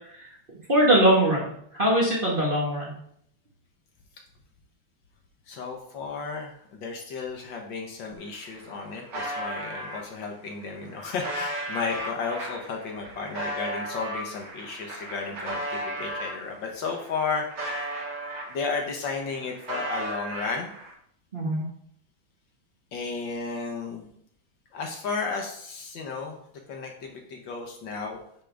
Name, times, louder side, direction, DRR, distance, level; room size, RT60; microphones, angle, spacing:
voice 1, 0.7-2.9 21.3-21.6, right 1 dB, 30° right, -4 dB, 1.4 m, -22 dB
voice 2, 5.5-17.9 18.5-20.7 22.9-24.1 24.7-26.4 26.7-28.2, left 4 dB, 65° left, 1 dB, 1.6 m, -33 dB
sound 1, 8.1-8.2 8.4-10.0 10.6-16.4 16.9-18.8 19.1-20.9, right 1 dB, 75° right, 3.1 m, -35 dB
10.0 x 3.8 x 3.4 m, 0.68 s
omnidirectional pair, 2.3 m